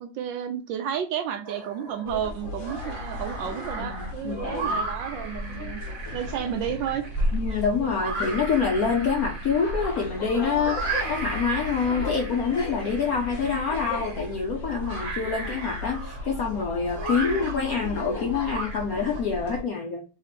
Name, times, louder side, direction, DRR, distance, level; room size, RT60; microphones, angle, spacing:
voice 1, 0.0-5.8 6.1-7.0, right 9 dB, 75° right, 7 dB, 1.1 m, -31 dB
sound 1, 1.4-2.1 2.5-19.2, right 3 dB, 55° right, 1.4 m, -36 dB
sound 2, 2.1-19.6, left 1 dB, 50° left, 1.0 m, -35 dB
voice 2, 3.8-4.8 7.3-20.0, left 5 dB, 70° left, 1 dB, 0.8 m, -26 dB
3.5 x 2.8 x 4.0 m, 0.32 s
omnidirectional pair, 2.3 m